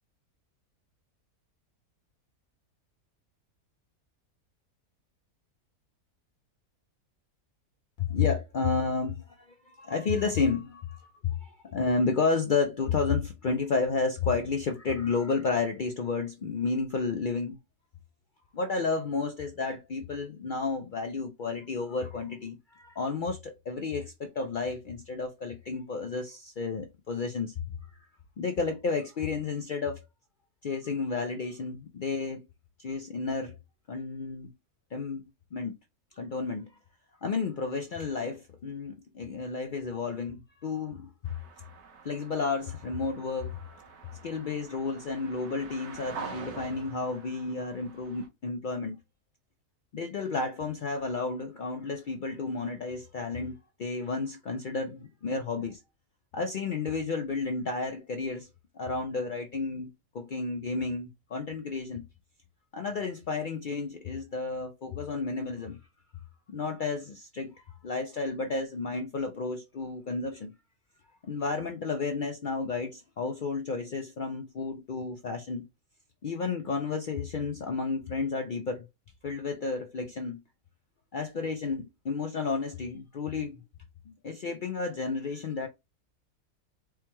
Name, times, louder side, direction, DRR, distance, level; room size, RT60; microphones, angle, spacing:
voice 1, 8.0-9.4 9.8-17.6 18.5-27.5 27.9-28.1 28.4-30.0 30.6-32.4 32.8-33.6 33.9-34.5 34.9-35.7 36.2-36.8 37.2-41.1 42.0-43.8 44.2-49.0 49.9-55.8 56.3-58.5 58.7-62.1 62.7-65.8 66.5-70.5 71.2-75.7 76.2-78.9 79.2-80.4 81.1-83.6 84.1-85.7, left 4 dB, 90° left, 0.4 m, -32 dB
sound 1, 41.2-48.3, right 5 dB, 55° right, 1.1 m, -46 dB
4.7 x 2.2 x 3.0 m
omnidirectional pair, 1.6 m